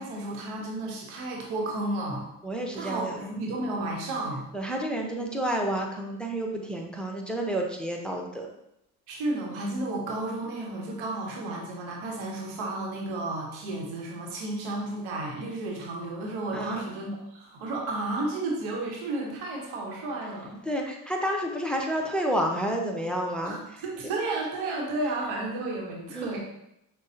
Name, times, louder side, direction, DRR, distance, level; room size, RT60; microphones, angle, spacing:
voice 1, 0.0-2.2 2.7-4.5 9.1-20.6 23.4-26.4, right 2 dB, 85° right, -1 dB, 0.9 m, -32 dB
voice 2, 2.4-3.3 4.5-8.5 16.5-16.8 20.7-23.6 26.1-26.3, right 1 dB, ahead, 1 dB, 0.7 m, -30 dB
6.1 x 2.2 x 2.7 m, 0.82 s
supercardioid pair, 50°, 47 cm